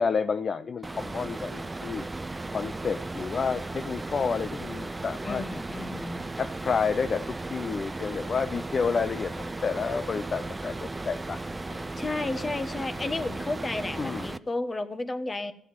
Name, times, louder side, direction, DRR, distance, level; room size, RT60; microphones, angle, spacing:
voice 1, 0.0-2.1 2.5-5.4 6.4-11.4 11.7-12.0 14.0-14.3, left 5 dB, 45° left, 12 dB, 0.5 m, -30 dB
sound 1, 0.8-14.4, right 2 dB, 15° right, 0.6 m, -36 dB
voice 2, 5.2-6.2 12.0-15.5, left 2 dB, 25° left, 12 dB, 1.3 m, -32 dB
14.0 x 8.3 x 9.6 m, 0.69 s
cardioid pair, 90°, 0 cm